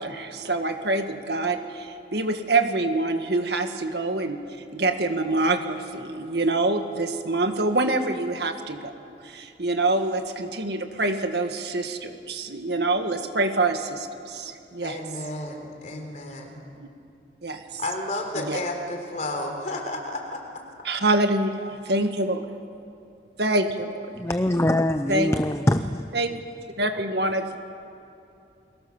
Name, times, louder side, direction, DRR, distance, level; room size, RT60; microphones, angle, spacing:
voice 1, 0.0-4.4 4.7-8.9 9.2-15.0 16.8-16.9 17.4-17.8 18.4-18.6 20.8-22.5 23.4-24.1 25.1-25.3 26.1-26.4 26.8-27.6, right 2 dB, 65° right, 6 dB, 1.9 m, -26 dB
voice 2, 14.8-16.7 17.8-20.4, left 1 dB, 40° left, 2 dB, 3.9 m, -32 dB
voice 3, 24.2-26.0, left 1 dB, 15° left, 8 dB, 0.6 m, -23 dB
30.0 x 23.0 x 7.3 m, 2.6 s
head